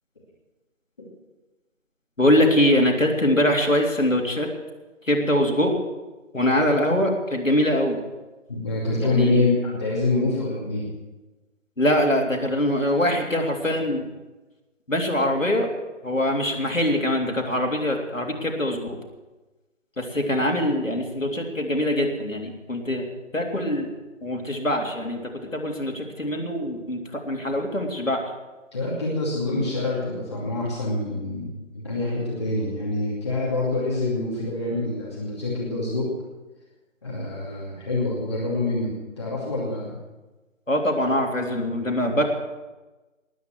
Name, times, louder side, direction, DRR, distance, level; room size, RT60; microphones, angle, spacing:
voice 1, 2.2-4.5 5.1-5.7 6.3-8.0 9.0-9.4 11.8-14.1 14.9-15.7 16.0-19.0 20.0-23.0 23.3-23.9 24.2-25.2 25.5-28.2 40.7-42.3, left 1 dB, 85° left, 1 dB, 3.5 m, -23 dB
voice 2, 8.5-10.9 28.7-36.1 37.0-40.0, left 2 dB, 20° left, -6 dB, 2.5 m, -26 dB
19.5 x 9.7 x 6.4 m, 1.1 s
figure-of-eight pair, 160°, 38 cm